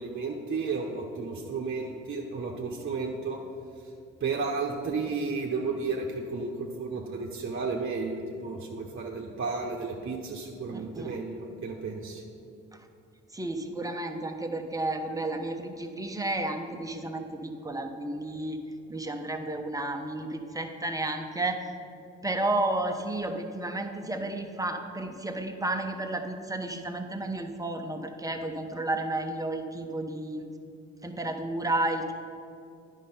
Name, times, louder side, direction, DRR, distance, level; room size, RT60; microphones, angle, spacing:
voice 1, 0.0-3.4 4.2-12.2, right 4 dB, 45° right, -1 dB, 1.0 m, -33 dB
voice 2, 10.7-11.1 13.3-18.6 18.9-21.6 22.2-30.4 31.0-32.1, right 2 dB, 10° right, 4 dB, 1.0 m, -32 dB
9.8 x 5.5 x 5.5 m, 2.5 s
supercardioid pair, 65°, 29 cm